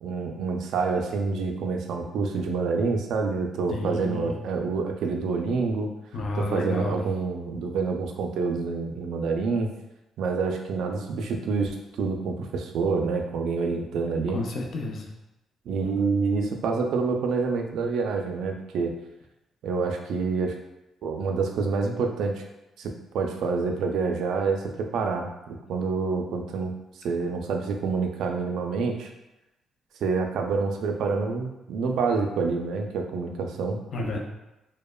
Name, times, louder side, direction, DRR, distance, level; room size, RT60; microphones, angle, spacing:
voice 1, 0.0-5.9 6.4-9.7 10.2-14.4 15.7-19.0 19.6-20.6 21.0-22.3 22.8-25.3 25.7-26.7 27.0-29.1 30.0-33.8, right 4 dB, 80° right, 3 dB, 0.3 m, -27 dB
voice 2, 3.7-4.3 6.1-7.0 14.3-15.1 33.9-34.2, left 2 dB, 60° left, 1 dB, 0.4 m, -30 dB
2.9 x 2.0 x 2.2 m, 0.96 s
cardioid pair, 90°, 0 cm